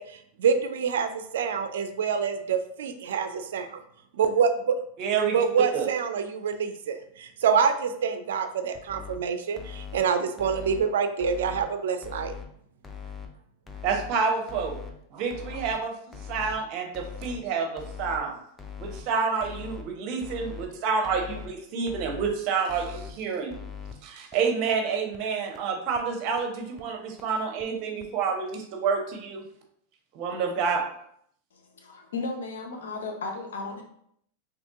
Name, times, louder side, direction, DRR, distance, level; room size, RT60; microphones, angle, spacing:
voice 1, 0.0-3.8 4.1-4.5 5.3-12.3, right 6 dB, 75° right, 8 dB, 0.4 m, -26 dB
voice 2, 5.0-5.4 5.7-5.9 13.8-14.8 15.1-15.9 16.2-18.4 18.8-23.6 24.0-29.4 30.1-30.8, right 5 dB, 50° right, 3 dB, 0.8 m, -28 dB
sound 1, 8.7-9.2 9.6-10.0 10.4-10.8 11.2-11.6 12.0-12.4 12.8-13.3 13.7-14.1 14.5-14.9 15.3-15.7 16.1-16.5 16.9-17.4 17.8-18.2 18.6-19.0 19.4-19.8 20.2-20.7 21.0-21.5 21.9-22.3 22.7-23.1 23.5-23.9 24.3-24.4 24.7-24.8 25.1-25.2 25.6-25.7 25.9-26.0 26.4-26.5 26.8-26.9 27.2-27.3 27.6-27.7 28.0-28.1, left 7 dB, 15° left, 0.5 m, -40 dB
voice 3, 31.5-33.8, left 3 dB, 80° left, 2 dB, 0.7 m, -35 dB
2.9 x 2.6 x 3.5 m, 0.68 s
hypercardioid pair, 105°, 0 cm